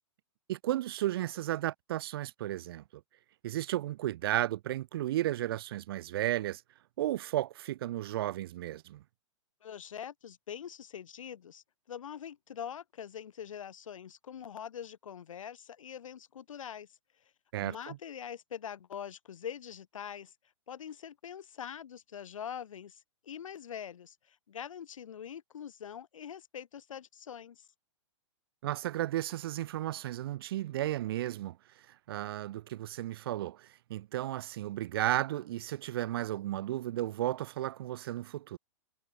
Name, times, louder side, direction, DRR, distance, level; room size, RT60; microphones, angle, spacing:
voice 1, 0.5-2.8 3.4-6.6 7.0-9.0 17.5-18.0 28.6-31.6 32.1-38.6, right 14 dB, 50° right, 0.4 m, -34 dB
voice 2, 9.6-16.9 17.6-20.3 20.7-27.7, left 8 dB, 90° left, 1.2 m, -44 dB
hypercardioid pair, 155°, 16 cm